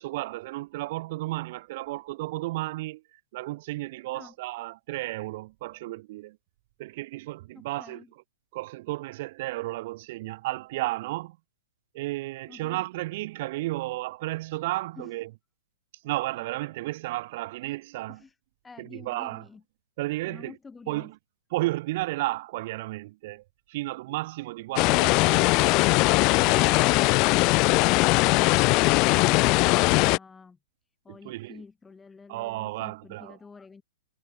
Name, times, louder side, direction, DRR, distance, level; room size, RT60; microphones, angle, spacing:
voice 1, 0.0-6.4 6.8-8.0 8.5-11.4 11.9-15.3 16.0-18.2 18.8-19.4 20.0-20.5 20.9-21.2 21.5-25.8 26.3-27.0 31.1-31.6 32.3-33.4, right 19 dB, 45° right, 7.3 m, -33 dB
voice 2, 7.5-8.1 12.5-12.8 15.0-15.1 18.1-18.4 18.6-19.6 20.3-21.1 31.0-33.8, left 4 dB, 10° left, 5.3 m, -48 dB
sound 1, 24.8-30.2, left 26 dB, 35° left, 1.1 m, -20 dB
figure-of-eight pair, 110°, 0 cm